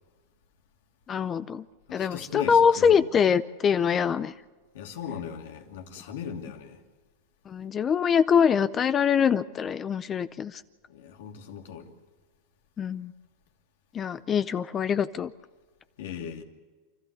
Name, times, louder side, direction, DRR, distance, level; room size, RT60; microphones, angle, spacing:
voice 1, 1.1-1.6 1.9-4.3 7.5-10.6 12.8-13.1 13.9-15.3, left 7 dB, 25° left, 0.6 m, -24 dB
voice 2, 1.9-3.0 4.7-6.8 10.9-11.9 16.0-16.4, left 7 dB, 75° left, 2.8 m, -38 dB
28.0 x 13.0 x 8.2 m
supercardioid pair, 135°, 0 cm